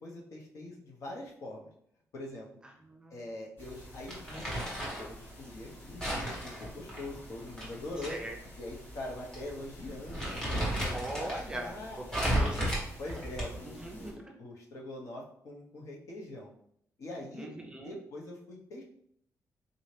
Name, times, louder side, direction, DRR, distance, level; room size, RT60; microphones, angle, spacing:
voice 1, 0.0-1.7 2.1-2.5 3.1-8.2 8.6-10.9 11.2-12.2 13.0-16.5 17.0-17.5 17.8-18.8, left 1 dB, 60° left, -2 dB, 0.9 m, -43 dB
sound 1, 3.6-14.1, equal, 40° left, 1.5 m, -49 dB
Crumpling crinkling, 4.1-5.1 6.0-8.1 8.4-8.5 9.3-9.5 9.9-11.4 12.1-13.7, equal, 10° left, 1.3 m, -33 dB
voice 2, 10.9-11.7 12.1-12.6 13.6-14.3 17.4-18.0, right 1 dB, 15° right, 1 dB, 0.5 m, -39 dB
3.9 x 2.7 x 3.2 m, 0.70 s
wide cardioid pair, 170°, 6 cm